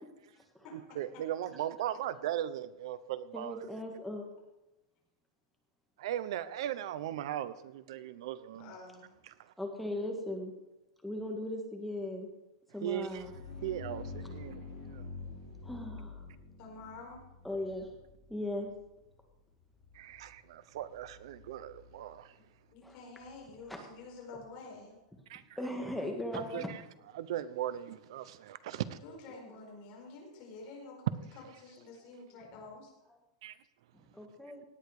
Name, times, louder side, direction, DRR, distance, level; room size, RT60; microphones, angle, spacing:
voice 1, 0.7-3.7 6.0-8.7 9.3-9.5 12.8-13.3 13.6-15.1 19.9-22.3 25.3-25.4 26.3-26.8 27.1-29.0 33.4-33.6, right 11 dB, 60° right, 0.9 m, -38 dB
voice 2, 3.3-4.3 9.6-10.5 11.0-12.3 12.7-13.3 15.6-16.3 17.4-17.9 18.3-18.7 22.8-22.9 23.7-23.8 25.6-26.7 33.9-34.6, left 1 dB, ahead, 1.7 m, -38 dB
voice 3, 8.6-9.1 16.6-17.2 22.7-25.0 28.9-31.1 31.6-32.9, left 3 dB, 35° left, 4.9 m, -49 dB
sound 1, 12.9-24.5, left 3 dB, 55° left, 5.4 m, -49 dB
17.5 x 9.0 x 4.9 m
supercardioid pair, 170°, 3 cm